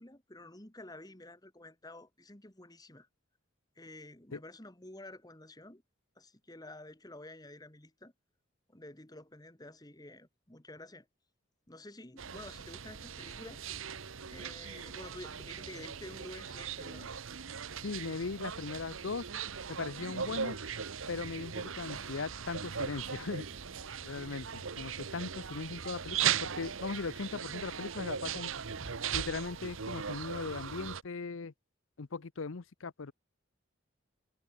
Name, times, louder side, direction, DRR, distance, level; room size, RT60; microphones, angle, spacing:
voice 1, 0.0-3.1 3.8-5.8 6.2-8.1 8.7-11.1 11.7-13.7 14.3-17.1, left 1 dB, 20° left, 2.0 m, -50 dB
sound 1, 12.2-31.0, right 7 dB, 80° right, 1.1 m, -39 dB
voice 2, 17.8-19.2 19.7-20.6 21.1-23.4 24.0-28.5 29.1-31.5 32.0-33.1, left 4 dB, 75° left, 0.7 m, -39 dB
head